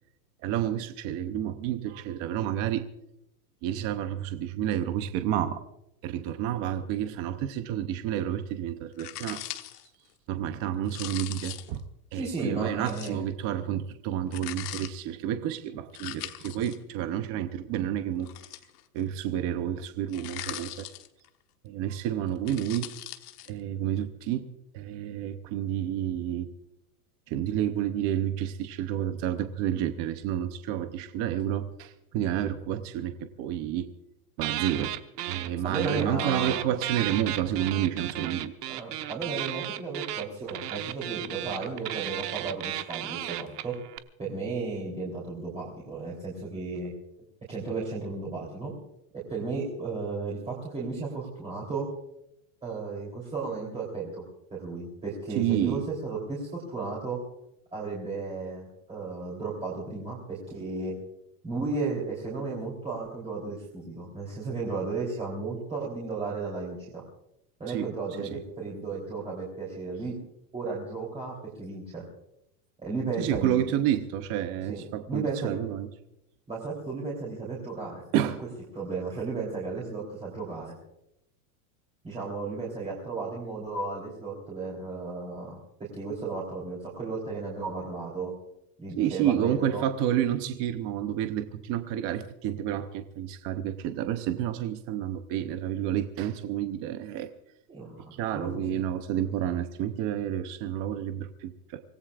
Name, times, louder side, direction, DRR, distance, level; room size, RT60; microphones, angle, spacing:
voice 1, 0.4-2.8 3.6-5.6 6.0-9.4 10.3-11.8 12.1-18.3 18.9-20.9 21.6-22.9 23.5-24.5 24.7-26.5 27.3-33.9 34.4-34.9 35.3-38.5 55.3-55.8 67.7-67.9 68.2-68.4 73.2-75.9 78.1-78.4 89.0-97.3 98.2-101.8, right 11 dB, 30° right, 9 dB, 0.7 m, -30 dB
sound 1, 9.0-9.9 10.9-11.8 12.9-13.2 14.3-14.9 16.0-16.8 18.2-19.0 20.1-21.3 22.3-23.5, left 14 dB, 80° left, 1.3 m, -40 dB
voice 2, 12.1-13.2 35.6-36.7 38.7-43.8 44.2-46.9 47.5-48.7 49.3-51.9 52.6-54.2 54.5-57.2 57.7-61.0 61.4-67.0 67.6-70.2 70.5-72.0 72.8-73.6 74.7-75.6 76.5-78.0 78.7-80.8 82.0-88.3 88.8-89.8 97.7-98.6, right 3 dB, 15° right, -5 dB, 3.3 m, -34 dB
sound 2, 34.4-35.5 35.7-44.0, right 14 dB, 80° right, 1.2 m, -34 dB
25.0 x 18.0 x 2.4 m, 0.81 s
supercardioid pair, 160°, 46 cm